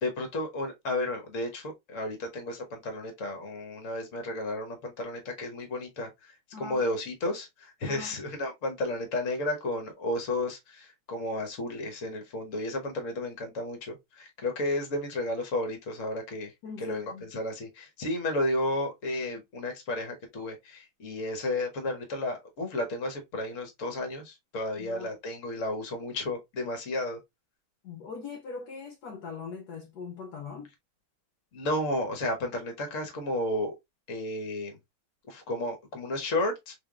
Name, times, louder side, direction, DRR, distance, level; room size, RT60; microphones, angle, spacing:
voice 1, 0.0-16.5 16.8-27.2 31.5-33.7 34.1-34.8 35.3-36.7, left 1 dB, 45° left, 1.2 m, -32 dB
voice 2, 6.5-6.8 7.8-8.2 16.6-17.3 24.8-25.1 27.8-30.7, left 5 dB, 65° left, 1.1 m, -41 dB
3.8 x 3.5 x 2.3 m
omnidirectional pair, 2.3 m